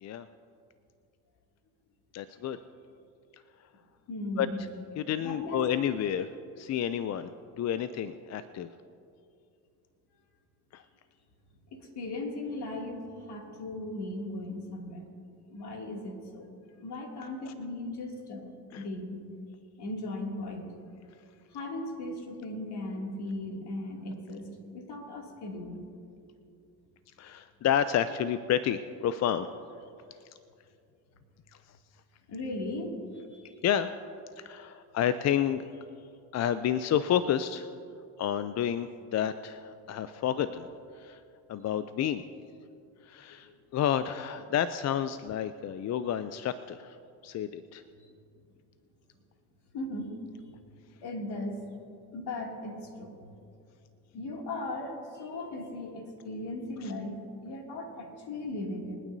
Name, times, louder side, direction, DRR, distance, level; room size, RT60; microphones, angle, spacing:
voice 1, 2.1-2.6 4.4-4.5 5.0-7.3 7.6-8.7 10.7-10.8 17.5-17.6 18.7-18.9 27.2-29.5 33.6-33.9 34.4-35.6 36.3-37.7 38.2-40.7 40.9-41.2 41.5-42.2 43.0-47.0 47.2-47.8 56.8-56.9, left 9 dB, 35° left, 12 dB, 0.5 m, -30 dB
voice 2, 4.1-4.6 5.2-5.7 11.7-15.1 15.5-16.5 16.8-19.2 19.8-20.6 21.5-25.8 32.3-33.6 43.3-43.4 49.7-50.1 50.4-50.5 51.0-51.7 52.1-53.3 54.1-59.0, left 1 dB, 50° left, 0 dB, 2.7 m, -37 dB
27.0 x 9.3 x 2.7 m, 2.5 s
hypercardioid pair, 75°, 49 cm